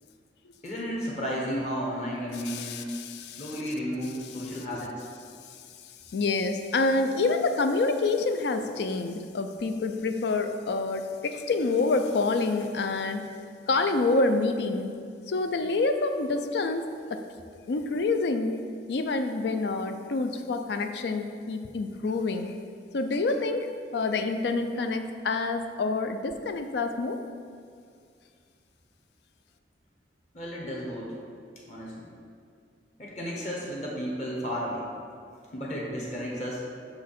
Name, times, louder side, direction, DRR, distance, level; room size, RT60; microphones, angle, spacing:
voice 1, 0.6-2.9 3.3-5.0 30.3-31.1 31.7-32.1 33.0-34.9 35.5-36.6, equal, 40° left, -4 dB, 1.1 m, -33 dB
voice 2, 2.3-3.6 6.1-13.3 13.7-14.9 15.3-17.2 17.7-18.6 18.9-22.6 22.9-27.2, left 3 dB, 65° left, 7 dB, 0.4 m, -27 dB
6.2 x 4.8 x 4.2 m, 2.2 s
head